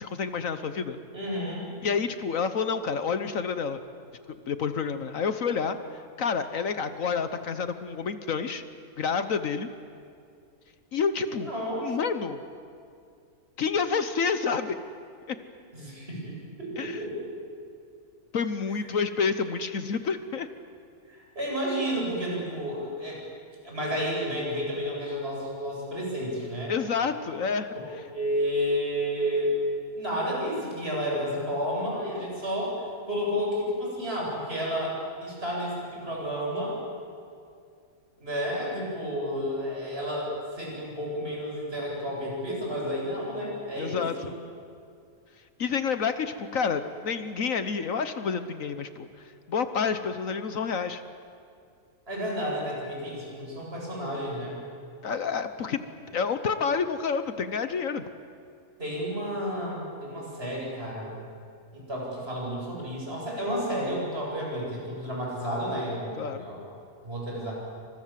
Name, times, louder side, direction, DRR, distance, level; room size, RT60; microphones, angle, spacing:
voice 1, 0.0-1.0 1.8-3.8 4.5-5.8 6.2-8.6 9.0-9.7 10.9-11.5 11.8-12.4 13.6-14.8 15.3-15.4 16.8-17.0 18.3-20.5 26.7-27.7 43.8-44.3 45.6-49.1 49.5-51.0 55.0-55.8 56.1-58.1 66.2-66.5, left 5 dB, 65° left, 10 dB, 1.4 m, -29 dB
voice 2, 1.1-1.7 11.3-11.9 15.7-17.3 21.1-23.2 23.6-26.7 28.1-29.5 29.9-32.8 33.1-36.8 38.2-44.3 52.1-54.6 58.8-61.2 61.7-66.6 67.0-67.5, equal, 40° right, -3 dB, 8.3 m, -31 dB
28.5 x 25.5 x 7.5 m, 2.4 s
omnidirectional pair, 1.6 m